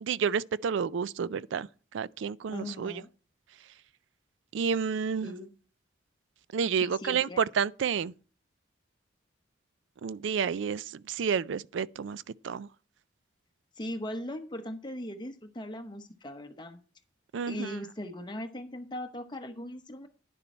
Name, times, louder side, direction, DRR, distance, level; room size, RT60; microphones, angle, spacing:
voice 1, 0.0-3.0 4.5-5.3 6.5-8.1 10.0-12.7 17.3-17.8, right 6 dB, 70° right, 0.4 m, -30 dB
voice 2, 2.5-3.1 5.2-5.5 6.8-7.4 13.8-16.8 17.5-20.1, left 1 dB, 25° left, 0.9 m, -39 dB
10.0 x 6.9 x 4.3 m
head